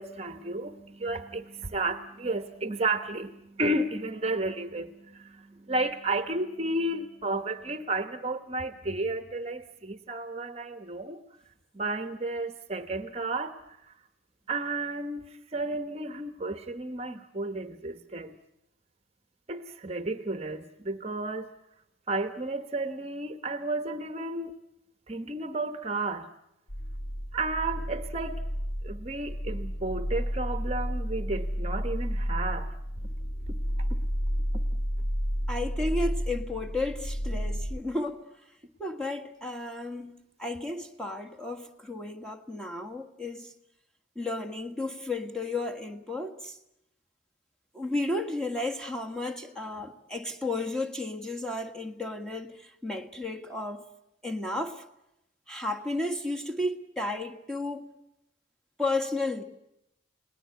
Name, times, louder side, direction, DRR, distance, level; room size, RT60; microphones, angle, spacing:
voice 1, 0.0-11.2 11.7-13.6 14.5-18.4 19.5-21.5 22.1-24.5 25.1-26.3 27.3-28.4 28.8-32.7 33.9-34.0, right 2 dB, 30° right, 1.0 m, -32 dB
sound 1, 26.7-37.8, equal, 55° left, 1.3 m, -31 dB
voice 2, 35.5-38.2 38.8-40.1 40.4-43.5 44.1-46.6 47.7-53.8 54.2-54.8 55.5-57.9 58.8-59.4, left 2 dB, 5° left, 1.5 m, -33 dB
30.0 x 19.0 x 8.2 m
head